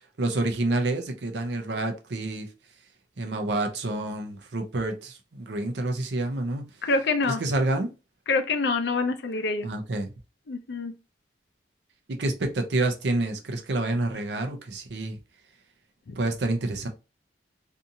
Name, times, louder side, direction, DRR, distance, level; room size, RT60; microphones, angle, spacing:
voice 1, 0.2-2.5 3.2-6.6 7.4-7.9 9.6-10.1 12.1-15.2 16.2-16.9, right 2 dB, 70° right, 0.6 m, -28 dB
voice 2, 6.8-7.4 8.3-9.7 10.5-10.9 16.1-16.2, left 3 dB, 70° left, 0.5 m, -26 dB
2.7 x 2.4 x 2.6 m
head